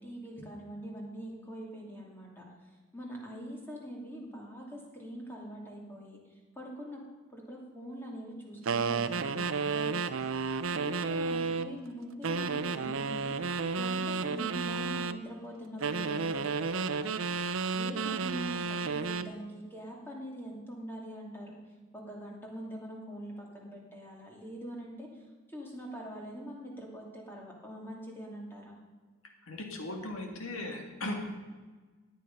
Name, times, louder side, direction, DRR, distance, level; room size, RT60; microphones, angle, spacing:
voice 1, 0.0-7.0 7.3-10.2 10.7-13.3 13.8-21.6 21.9-28.7, equal, 10° left, -2 dB, 2.6 m, -44 dB
sound 1, 8.7-11.7 12.2-15.2 15.8-19.3, right 4 dB, 70° right, 0.6 m, -32 dB
voice 2, 29.4-31.1, left 2 dB, 70° left, 3 dB, 2.0 m, -38 dB
16.5 x 9.2 x 5.4 m, 1.4 s
head